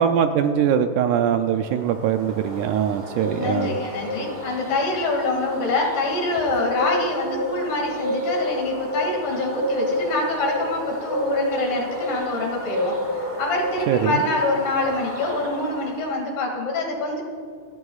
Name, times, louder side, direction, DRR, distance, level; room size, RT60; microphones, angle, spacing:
voice 1, 0.0-3.8 13.9-14.2, right 8 dB, 80° right, 7 dB, 1.8 m, -22 dB
sound 1, 1.5-16.2, left 1 dB, 25° right, 1.3 m, -30 dB
voice 2, 3.3-17.2, left 2 dB, 75° left, 0 dB, 3.9 m, -25 dB
28.5 x 11.0 x 2.4 m, 2.2 s
omnidirectional pair, 3.9 m